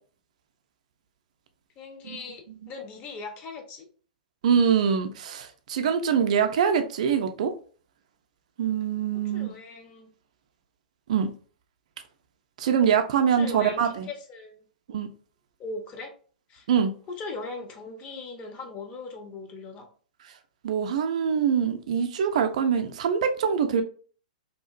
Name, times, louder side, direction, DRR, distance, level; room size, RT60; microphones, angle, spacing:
voice 1, 1.8-3.9 9.3-10.1 13.2-14.7 15.6-16.1 16.5-16.7 17.2-19.9, left 3 dB, 30° left, 0.5 m, -39 dB
voice 2, 4.4-7.5 8.6-9.5 11.1-11.3 12.6-14.1 14.9-15.1 16.7-16.9 20.6-23.8, right 7 dB, 50° right, 0.3 m, -24 dB
2.7 x 2.4 x 2.3 m
figure-of-eight pair, 105°, 5 cm